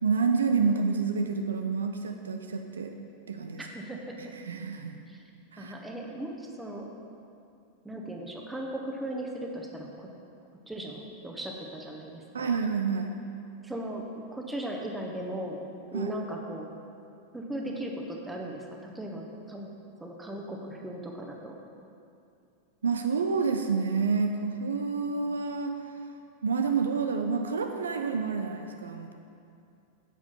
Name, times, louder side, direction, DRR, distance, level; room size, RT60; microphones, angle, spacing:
voice 1, 0.0-2.9 3.3-3.7 4.2-5.0 5.5-5.7 12.3-13.1 15.9-16.1 22.8-25.7 26.4-29.1, right 5 dB, 70° right, 5 dB, 0.5 m, -28 dB
voice 2, 3.6-4.3 5.6-6.9 7.8-10.1 10.7-12.5 13.6-16.7 17.3-19.7 20.0-21.6, right 1 dB, 5° right, 0 dB, 1.1 m, -37 dB
9.6 x 7.7 x 3.8 m, 2.5 s
figure-of-eight pair, 90°, 0 cm